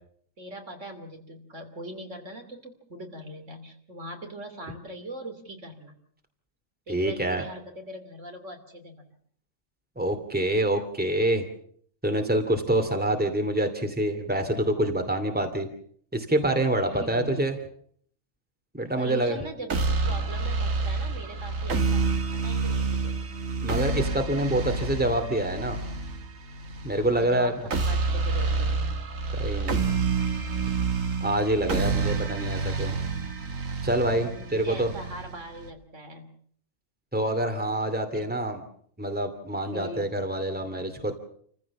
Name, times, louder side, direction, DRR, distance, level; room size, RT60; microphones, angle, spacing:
voice 1, 0.4-6.0 6.9-9.0 16.8-17.5 19.0-23.2 27.0-28.9 34.4-36.3 38.1-38.3 39.7-40.1, right 1 dB, 70° right, 5 dB, 3.3 m, -41 dB
voice 2, 6.9-7.4 10.0-11.4 12.0-15.7 16.1-17.5 18.7-19.4 23.6-25.8 26.8-27.5 29.3-29.8 31.2-32.9 33.8-34.9 37.1-38.6 39.0-41.1, right 1 dB, 5° right, 6 dB, 2.5 m, -26 dB
sound 1, 19.7-35.7, right 4 dB, 90° right, 2.3 m, -28 dB
29.0 x 15.0 x 7.2 m, 0.62 s
omnidirectional pair, 1.3 m